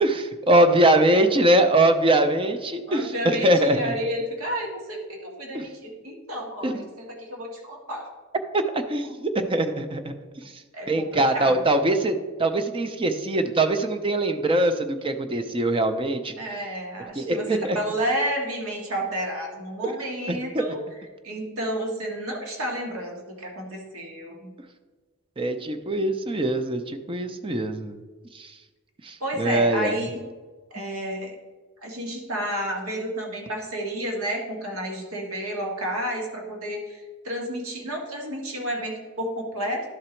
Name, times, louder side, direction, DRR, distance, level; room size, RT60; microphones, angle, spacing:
voice 1, 0.0-4.0 5.5-5.7 6.6-6.8 8.5-10.1 10.5-16.3 17.2-17.8 19.8-19.9 20.3-20.7 25.4-28.0 28.3-28.5 29.0-30.0, right 1 dB, 25° right, 8 dB, 0.5 m, -22 dB
voice 2, 2.9-8.1 9.0-9.1 10.7-11.5 16.4-20.8 21.2-24.5 29.2-30.2 30.7-31.3 31.8-39.8, equal, 80° right, 1 dB, 1.5 m, -31 dB
11.5 x 3.9 x 4.4 m, 1.4 s
head